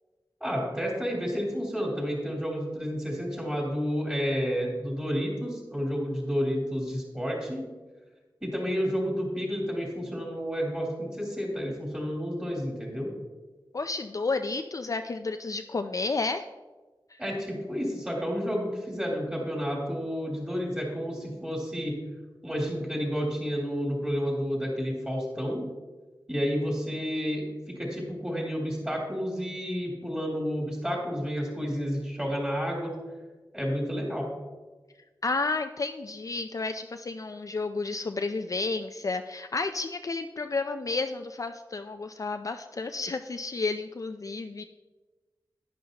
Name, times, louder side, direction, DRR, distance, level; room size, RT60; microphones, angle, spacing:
voice 1, 0.4-7.6 8.4-13.1 17.2-22.0 22.4-25.7 26.3-32.9 33.5-34.3, equal, 10° right, -2 dB, 3.4 m, -30 dB
voice 2, 13.7-16.4 17.1-17.2 35.2-44.6, left 3 dB, 45° left, 7 dB, 0.4 m, -31 dB
11.0 x 10.5 x 2.9 m, 1.3 s
wide cardioid pair, 95°, 8 cm